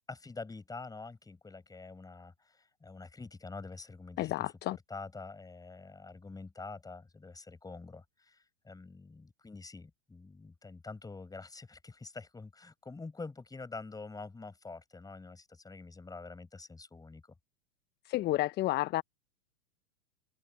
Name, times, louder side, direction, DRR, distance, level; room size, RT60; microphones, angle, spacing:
voice 1, 0.1-17.3, left 3 dB, 10° left, 7.0 m, -46 dB
voice 2, 4.2-4.8 18.0-19.0, left 16 dB, 30° left, 0.8 m, -31 dB
hypercardioid pair, 95°, 33 cm